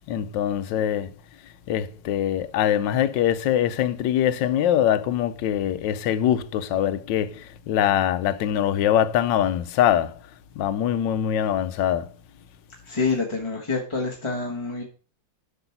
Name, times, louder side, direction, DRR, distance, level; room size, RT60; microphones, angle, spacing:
voice 1, 0.1-1.1 1.7-10.1 10.6-12.1, left 10 dB, 85° left, 1.4 m, -23 dB
voice 2, 12.8-14.8, left 4 dB, 20° left, 1.2 m, -27 dB
7.8 x 6.0 x 5.8 m
omnidirectional pair, 2.0 m